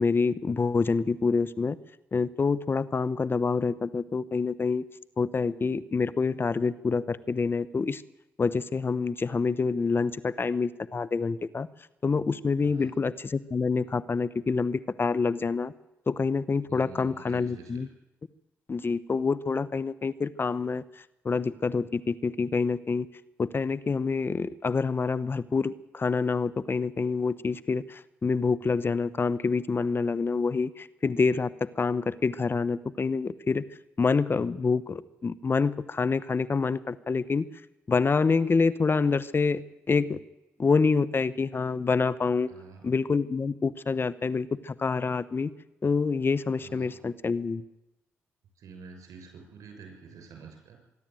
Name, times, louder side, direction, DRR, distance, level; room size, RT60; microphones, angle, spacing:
voice 1, 0.0-1.8 2.1-4.8 5.2-8.0 8.4-11.7 12.0-15.7 16.1-17.9 18.7-23.1 23.4-33.6 34.0-37.5 37.9-40.2 40.6-42.5 42.8-45.5 45.8-47.6, left 4 dB, 40° left, 16 dB, 0.9 m, -27 dB
voice 2, 16.7-17.8 42.5-42.8 46.6-47.0 48.6-50.8, right 5 dB, 70° right, 5 dB, 6.3 m, -47 dB
24.0 x 12.0 x 9.1 m, 0.91 s
supercardioid pair, 50°, 6 cm